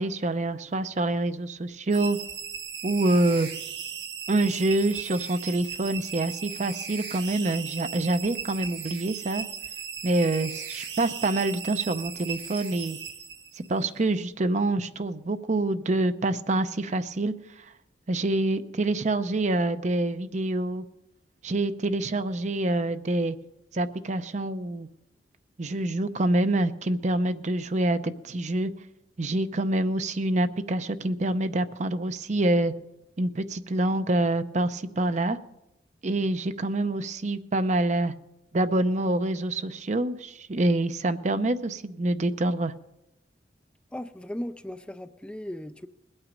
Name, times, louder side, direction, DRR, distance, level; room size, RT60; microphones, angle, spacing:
voice 1, 0.0-2.2 2.8-3.5 4.3-9.5 10.0-13.0 13.7-17.3 18.1-20.8 21.4-23.4 23.7-24.9 25.6-28.7 29.2-32.7 33.2-35.4 36.0-38.1 38.5-42.7, right 2 dB, 45° right, 11 dB, 0.6 m, -26 dB
sound 1, 1.9-13.8, right 7 dB, 90° right, 1.5 m, -37 dB
voice 2, 43.9-45.9, left 1 dB, 5° left, 10 dB, 0.4 m, -37 dB
21.0 x 8.9 x 5.2 m, 0.88 s
head